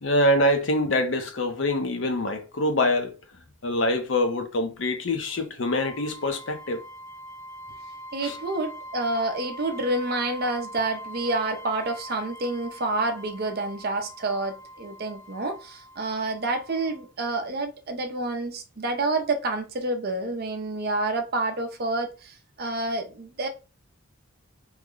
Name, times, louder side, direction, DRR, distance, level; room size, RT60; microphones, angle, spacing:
voice 1, 0.0-3.1 3.6-6.8 8.2-8.4, left 1 dB, 60° left, 0.6 m, -25 dB
sound 1, 5.6-17.1, equal, 15° left, 0.4 m, -43 dB
voice 2, 8.1-23.5, right 2 dB, 45° right, 0.5 m, -28 dB
3.1 x 2.1 x 3.7 m
head